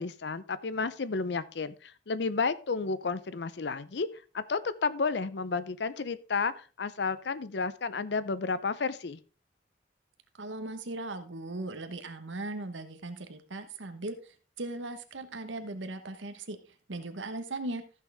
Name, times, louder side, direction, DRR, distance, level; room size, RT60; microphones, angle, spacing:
voice 1, 0.0-4.1 4.3-9.2, left 4 dB, 65° left, 16 dB, 0.6 m, -32 dB
voice 2, 10.4-16.6 16.9-17.8, right 2 dB, 90° right, 8 dB, 1.2 m, -38 dB
14.0 x 6.4 x 3.5 m, 0.35 s
head